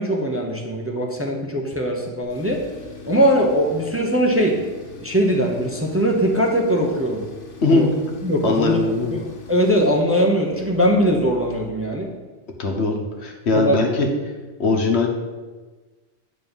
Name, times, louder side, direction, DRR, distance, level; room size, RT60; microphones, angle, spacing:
voice 1, 0.0-2.6 3.0-4.6 5.0-7.2 7.7-7.9 8.2-8.8 9.1-9.2 9.5-12.1 13.5-13.8, equal, 15° right, 0 dB, 0.9 m, -20 dB
Tools, 2.2-11.7, left 4 dB, 80° left, 1.5 m, -42 dB
voice 2, 8.4-9.2 12.6-14.1 14.6-15.1, left 3 dB, 65° left, 1 dB, 1.4 m, -20 dB
9.4 x 4.2 x 7.0 m, 1.3 s
omnidirectional pair, 1.2 m